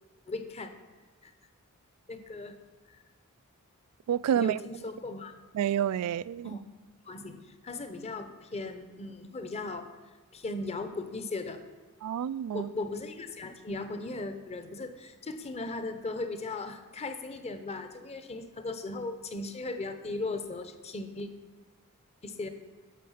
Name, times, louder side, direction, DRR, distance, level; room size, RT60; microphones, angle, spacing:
voice 1, 0.3-0.7 1.2-1.3 2.1-2.5 2.9-3.0 4.4-5.3 6.4-6.6 7.0-9.9 10.3-11.6 12.5-21.3 22.2-22.5, left 2 dB, 30° left, 0.8 m, -37 dB
voice 2, 4.1-4.6 5.5-6.5 12.0-12.7, right 9 dB, 85° right, 0.3 m, -28 dB
10.5 x 6.5 x 5.6 m
head